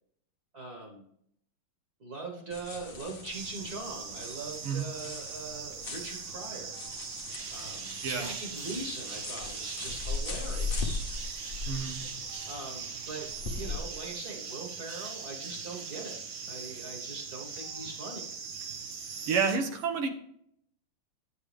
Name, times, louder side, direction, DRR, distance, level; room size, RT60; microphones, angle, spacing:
voice 1, 0.5-1.0 2.0-6.8 7.5-11.0 12.5-13.3 13.6-16.2 16.5-18.3, right 3 dB, 50° right, 0 dB, 1.9 m, -41 dB
sound 1, 2.5-13.8, left 4 dB, 50° left, 0.6 m, -39 dB
sound 2, 3.3-19.6, right 5 dB, 70° right, 1.8 m, -40 dB
voice 2, 11.7-12.0 19.3-20.1, right 5 dB, 85° right, 5 dB, 1.9 m, -29 dB
9.2 x 7.2 x 3.4 m, 0.69 s
omnidirectional pair, 2.4 m